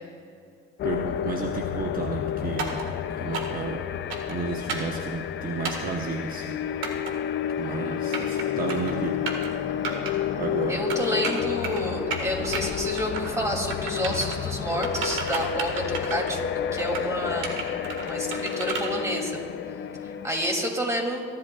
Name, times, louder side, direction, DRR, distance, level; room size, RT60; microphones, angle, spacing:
sound 1, 0.8-20.3, left 9 dB, 70° left, 0.6 m, -30 dB
voice 1, 0.8-3.8 4.3-6.6 7.6-9.3 10.4-10.8, right 4 dB, 45° right, 1 dB, 1.0 m, -32 dB
sound 2, 2.6-2.8 3.3-3.6 4.1-4.4 4.7-4.9 5.6-5.9 6.8-7.1 7.9-8.4 8.7-8.9 9.3-9.5 9.8-10.1 10.9-11.8 12.1-12.6 13.0-13.4 13.7-14.4 14.8-16.4 16.8-17.1 17.4-18.9, right 5 dB, 90° right, 1.7 m, -32 dB
voice 2, 10.7-16.5 16.7-17.6 18.0-19.4 20.0-21.2, equal, 15° right, 1 dB, 2.8 m, -29 dB
27.0 x 11.5 x 2.4 m, 2.2 s
cardioid pair, 90°, 20 cm